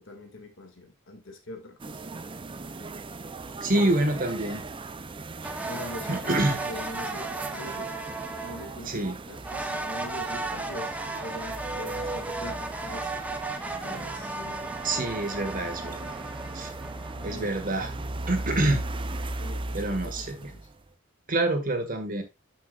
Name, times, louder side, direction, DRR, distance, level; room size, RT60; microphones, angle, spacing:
voice 1, 0.0-2.0 3.5-4.0 5.6-7.9 8.4-13.1 13.8-15.5 17.1-17.5 19.3-20.7, left 1 dB, 65° left, 2.2 m, -43 dB
sound 1, 1.8-20.9, right 2 dB, 25° right, 0.5 m, -38 dB
voice 2, 3.6-4.6 6.1-6.6 8.9-9.2 14.8-16.1 16.5-16.7 17.2-17.9 18.3-18.8 19.7-20.4 21.3-22.2, right 1 dB, 45° right, 1.7 m, -26 dB
sound 2, 5.4-8.8 9.4-17.6, right 2 dB, 5° right, 0.9 m, -35 dB
11.5 x 6.1 x 2.4 m
head